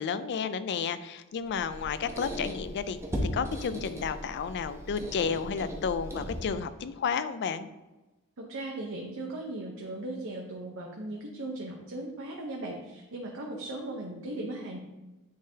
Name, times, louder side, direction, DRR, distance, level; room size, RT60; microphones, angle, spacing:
voice 1, 0.0-3.0 3.3-7.7, left 6 dB, 50° left, 12 dB, 0.4 m, -32 dB
Squeak, 1.4-6.7, equal, 10° right, 0.8 m, -37 dB
voice 2, 8.4-14.8, right 2 dB, 60° right, 0 dB, 0.8 m, -38 dB
9.3 x 3.8 x 2.8 m, 1.1 s
head